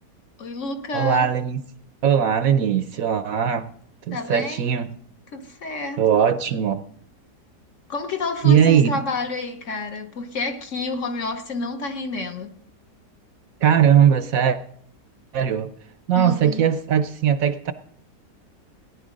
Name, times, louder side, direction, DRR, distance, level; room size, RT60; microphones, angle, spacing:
voice 1, 0.4-1.3 4.1-4.7 5.3-6.0 7.9-12.6 16.1-16.6, left 3 dB, 50° left, 1.3 m, -29 dB
voice 2, 0.9-1.6 2.0-3.7 4.1-4.9 6.0-6.8 8.4-8.9 13.6-14.6 15.3-15.7 16.1-17.7, right 8 dB, 65° right, 1.0 m, -19 dB
18.0 x 10.5 x 5.2 m
omnidirectional pair, 1.8 m